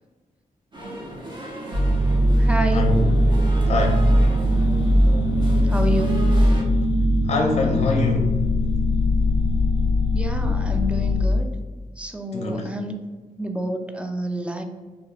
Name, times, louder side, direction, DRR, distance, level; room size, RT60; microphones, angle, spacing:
sound 1, 0.7-6.6, equal, 35° right, 0.7 m, -36 dB
sound 2, 1.7-11.2, equal, 55° right, 1.1 m, -20 dB
voice 1, 2.4-2.9 5.6-6.3 10.1-11.5 12.0-12.9 13.4-14.6, equal, 10° right, 4 dB, 0.3 m, -28 dB
voice 2, 3.7-4.0 7.3-8.3 12.3-12.7, left 3 dB, 50° left, 1 dB, 0.5 m, -23 dB
2.3 x 2.3 x 3.3 m, 1.3 s
cardioid pair, 75°, 15 cm